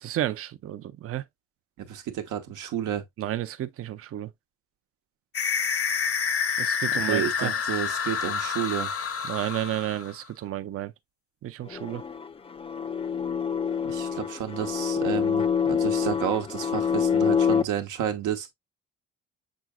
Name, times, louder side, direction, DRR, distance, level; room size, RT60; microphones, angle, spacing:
voice 1, 0.0-1.2 3.2-4.3 6.6-7.5 9.2-10.9 11.4-12.0, right 13 dB, 50° right, 0.5 m, -32 dB
voice 2, 1.8-3.0 6.9-8.9 13.8-18.5, right 10 dB, 85° right, 1.0 m, -31 dB
sound 1, 5.3-10.3, left 6 dB, 50° left, 0.7 m, -28 dB
sound 2, 11.7-17.6, left 7 dB, 20° left, 0.4 m, -26 dB
6.2 x 3.8 x 2.2 m
cardioid pair, 90°, 30 cm